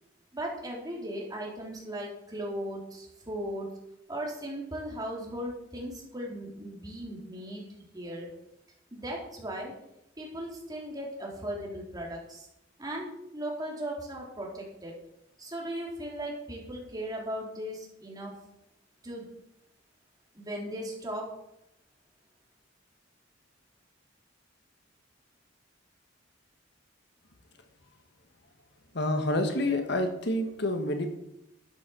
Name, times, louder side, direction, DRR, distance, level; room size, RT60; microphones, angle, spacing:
voice 1, 0.3-3.7 4.1-7.6 7.9-8.3 8.9-9.7 10.2-12.5 12.8-14.9 15.4-18.3 19.0-19.2 20.3-21.3, right 1 dB, 20° right, -2 dB, 3.9 m, -37 dB
voice 2, 28.9-31.1, left 1 dB, 60° left, 6 dB, 1.6 m, -28 dB
12.0 x 9.5 x 6.2 m, 0.81 s
head